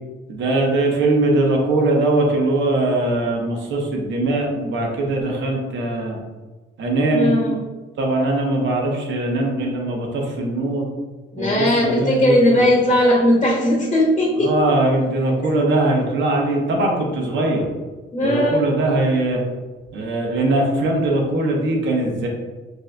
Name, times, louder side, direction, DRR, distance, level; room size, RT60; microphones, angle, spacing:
voice 1, 0.3-6.2 6.8-7.3 8.0-10.9 11.4-12.6 14.4-17.7 18.2-19.4 19.9-22.3, right 2 dB, 70° right, 0 dB, 1.0 m, -21 dB
voice 2, 7.1-7.6 11.3-14.5 18.1-18.6, left 1 dB, 30° left, -3 dB, 1.0 m, -18 dB
6.0 x 2.7 x 2.3 m, 1.3 s
cardioid pair, 90°, 20 cm